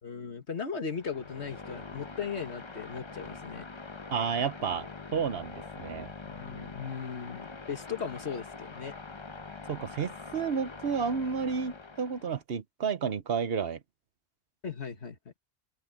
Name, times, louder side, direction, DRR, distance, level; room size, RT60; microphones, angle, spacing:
voice 1, 0.0-3.7 6.2-9.0 14.6-15.3, left 6 dB, 85° left, 2.1 m, -37 dB
sound 1, 0.9-12.4, left 4 dB, 30° left, 0.9 m, -44 dB
voice 2, 4.1-6.1 9.7-13.8, right 6 dB, 65° right, 1.1 m, -31 dB
omnidirectional pair, 1.1 m